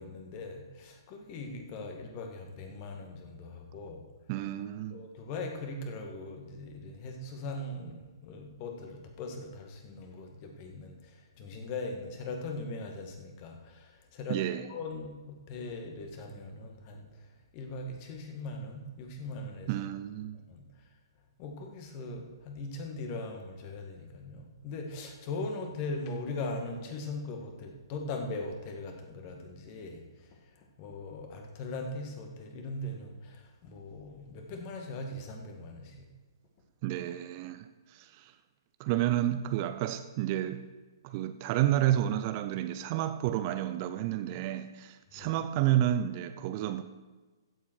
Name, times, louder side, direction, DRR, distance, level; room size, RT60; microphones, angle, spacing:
voice 1, 0.0-4.0 4.9-10.9 11.4-14.4 14.7-17.1 17.5-19.7 20.5-20.6 21.4-30.0 30.8-36.1 45.2-45.3, left 2 dB, 35° left, 1.9 m, -40 dB
voice 2, 4.3-5.0 14.3-14.7 19.7-20.4 36.8-38.3 38.8-40.6 41.0-46.8, right 12 dB, 35° right, 0.5 m, -30 dB
15.5 x 7.7 x 4.6 m
figure-of-eight pair, 125°, 2 cm